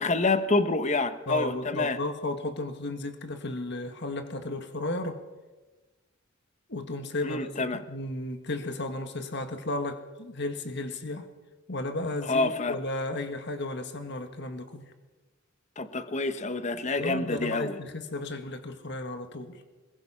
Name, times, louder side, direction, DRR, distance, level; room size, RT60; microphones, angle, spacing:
voice 1, 0.0-2.0 7.2-7.8 12.2-12.8 15.8-17.8, left 3 dB, 35° left, 11 dB, 1.1 m, -27 dB
voice 2, 1.3-5.2 6.7-7.5 7.9-11.3 11.7-14.9 17.0-19.6, left 2 dB, 60° left, 8 dB, 1.7 m, -34 dB
22.0 x 20.5 x 5.7 m, 1.2 s
head